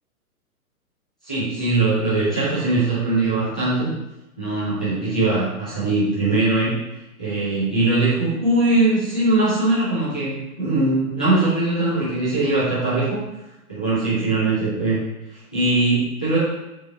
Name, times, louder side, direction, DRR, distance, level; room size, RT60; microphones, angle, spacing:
voice 1, 1.2-3.9 4.4-6.8 7.2-13.2 13.7-15.0 15.3-16.4, right 2 dB, 5° left, -10 dB, 0.3 m, -21 dB
7.8 x 3.0 x 5.0 m, 0.94 s
figure-of-eight pair, 120°, 44 cm